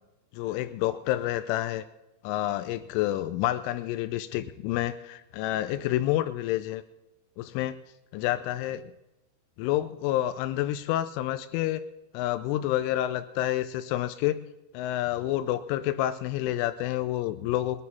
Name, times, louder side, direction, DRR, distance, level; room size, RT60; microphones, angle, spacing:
voice 1, 0.3-1.8 2.2-6.8 7.4-7.8 8.1-8.9 9.6-11.8 12.1-14.4 14.7-17.8, left 14 dB, 85° left, 11 dB, 3.1 m, -29 dB
22.0 x 9.7 x 4.1 m, 0.99 s
omnidirectional pair, 5.5 m